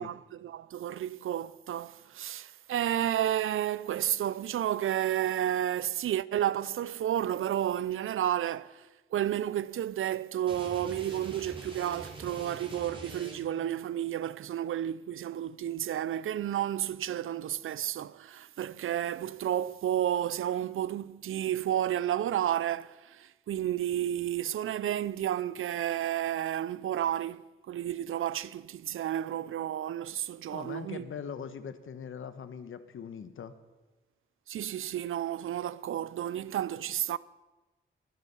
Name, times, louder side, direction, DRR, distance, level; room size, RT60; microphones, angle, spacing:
voice 1, 0.0-31.1 34.5-37.2, right 11 dB, 85° right, 0.4 m, -31 dB
sound 1, 10.4-13.7, right 2 dB, 25° right, 3.3 m, -45 dB
voice 2, 30.5-33.5, left 7 dB, 75° left, 1.0 m, -41 dB
22.5 x 8.3 x 5.5 m
wide cardioid pair, 140°, 21 cm